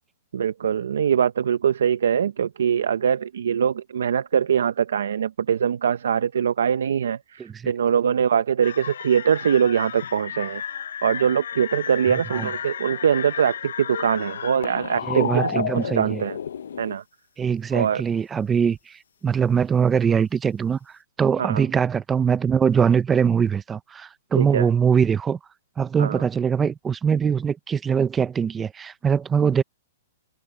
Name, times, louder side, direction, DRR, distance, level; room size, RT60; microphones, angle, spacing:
voice 1, 0.3-10.6 11.0-16.4 16.8-17.0 17.7-18.0 21.4-21.6 24.4-24.7 26.0-26.2, right 8 dB, 80° right, 0.7 m, -23 dB
voice 2, 7.4-7.7 12.3-12.5 15.1-16.2 17.4-20.8 21.2-25.4 25.8-29.6, right 7 dB, 10° right, 0.5 m, -22 dB
sound 1, 8.6-16.9, left 8 dB, 80° left, 0.7 m, -32 dB
hypercardioid pair, 170°, 0 cm